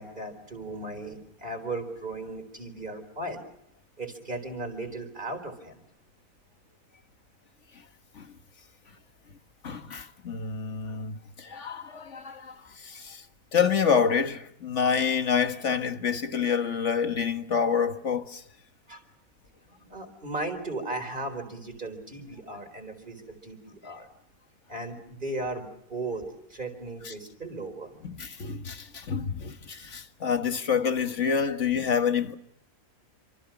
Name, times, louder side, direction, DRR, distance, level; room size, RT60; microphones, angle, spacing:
voice 1, 0.0-3.4 4.0-5.8 18.9-19.0 19.8-24.1 24.7-26.2 26.5-27.9, right 2 dB, 35° right, 4.4 m, -36 dB
voice 2, 9.6-13.3 13.5-18.4 27.1-27.2 28.0-32.3, left 6 dB, 55° left, 1.8 m, -27 dB
28.0 x 26.0 x 6.0 m
omnidirectional pair, 1.5 m